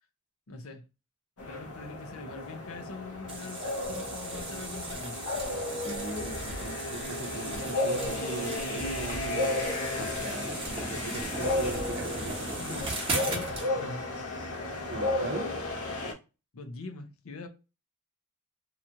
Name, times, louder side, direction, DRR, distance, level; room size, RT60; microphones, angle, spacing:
voice 1, 0.5-0.8 1.4-3.6 3.9-5.2 12.6-12.9 13.2-13.5 13.8-14.0 16.5-17.5, left 3 dB, 65° left, 0.6 m, -42 dB
sound 1, 1.4-16.1, left 2 dB, 85° left, 1.0 m, -34 dB
sound 2, 3.3-13.7, right 2 dB, 25° right, 0.9 m, -37 dB
voice 2, 5.8-9.7 10.2-12.5 14.9-15.5, right 3 dB, 55° right, 0.7 m, -40 dB
2.9 x 2.4 x 2.8 m
head